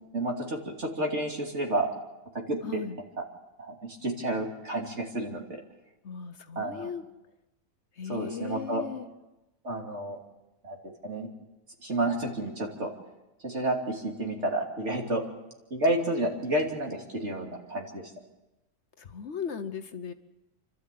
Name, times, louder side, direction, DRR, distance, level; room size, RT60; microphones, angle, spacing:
voice 1, 0.0-1.9 2.5-2.8 3.2-3.3 3.6-5.6 6.5-6.9 8.0-8.8 9.6-10.2 10.6-10.8 11.0-11.3 11.8-12.9 13.4-15.2 15.7-18.1, right 1 dB, 55° right, 1 dB, 3.2 m, -30 dB
voice 2, 2.6-3.0 6.0-7.0 8.0-9.1 19.0-20.1, left 6 dB, 60° left, 9 dB, 1.2 m, -37 dB
29.5 x 12.5 x 8.4 m, 1.0 s
omnidirectional pair, 1.4 m